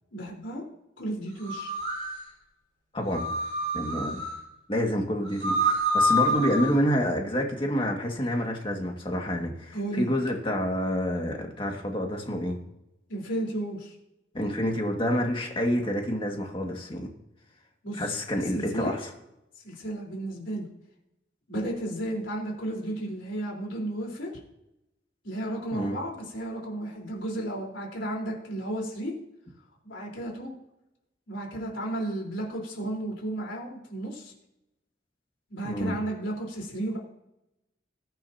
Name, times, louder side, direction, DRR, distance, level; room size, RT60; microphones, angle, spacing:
voice 1, 0.1-0.6 1.0-1.7 6.6-6.7 9.7-10.1 13.1-13.9 17.8-18.1 18.5-19.0 19.6-20.7 21.5-24.3 25.2-29.1 29.8-30.5 31.3-34.3 35.5-37.0, right 1 dB, 90° left, -2 dB, 4.3 m, -33 dB
sound 1, 1.4-2.1 3.1-4.3 5.2-6.7, equal, 35° right, 5.4 m, -26 dB
voice 2, 2.9-3.3 3.7-4.2 4.7-12.6 14.3-17.1 18.0-19.1 25.7-26.0 35.6-36.0, equal, 25° left, 1 dB, 2.1 m, -28 dB
20.5 x 9.0 x 2.9 m, 0.87 s
head